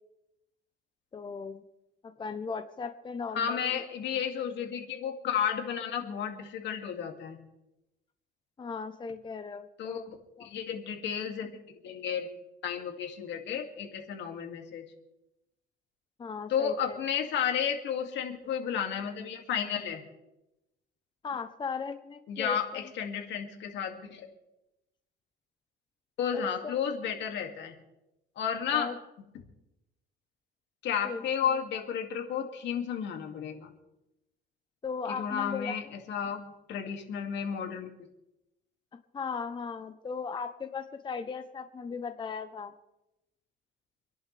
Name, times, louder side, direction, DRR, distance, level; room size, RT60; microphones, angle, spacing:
voice 1, 1.1-1.6 2.0-3.8 8.6-10.5 16.2-17.0 21.2-22.9 26.3-26.7 28.7-29.0 31.0-31.2 34.8-36.0 39.1-42.7, left 5 dB, 25° left, 8 dB, 0.8 m, -37 dB
voice 2, 3.3-7.4 9.8-10.0 10.4-11.5 11.8-12.3 12.6-14.8 16.5-20.0 22.3-24.3 26.2-27.7 28.4-28.9 30.8-33.7 35.1-37.9, left 8 dB, 70° left, 3 dB, 2.4 m, -32 dB
27.5 x 11.0 x 3.4 m, 0.93 s
cardioid pair, 125°, 19 cm